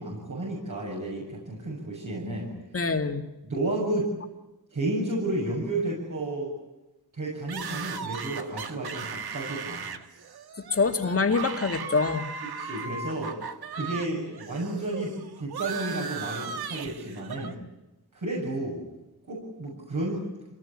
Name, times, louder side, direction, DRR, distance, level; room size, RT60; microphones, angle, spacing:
voice 1, 0.0-2.5 3.4-4.1 4.7-6.5 7.1-9.9 12.6-13.3 13.7-17.6 18.1-18.8 19.3-20.2, right 2 dB, 55° right, -2 dB, 7.2 m, -32 dB
voice 2, 2.7-3.2 10.7-12.3, left 4 dB, 40° left, 5 dB, 2.3 m, -25 dB
screaming and why, 7.5-14.1 14.3-17.5, right 6 dB, 90° right, 1.7 m, -37 dB
26.0 x 19.0 x 10.0 m, 1.0 s
wide cardioid pair, 110°, 37 cm